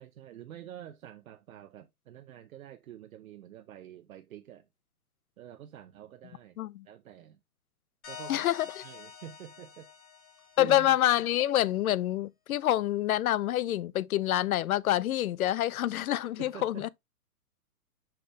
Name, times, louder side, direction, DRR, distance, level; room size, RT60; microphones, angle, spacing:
voice 1, 0.0-4.7 5.4-6.6 6.9-7.4 8.1-8.5 8.8-9.9 10.6-11.0 16.4-16.9, right 11 dB, 60° right, 0.8 m, -47 dB
sound 1, 8.0-11.4, left 8 dB, 45° left, 3.3 m, -47 dB
voice 2, 8.3-8.7 10.6-16.9, left 13 dB, 65° left, 0.6 m, -27 dB
6.0 x 5.0 x 3.2 m
hypercardioid pair, 150°, 46 cm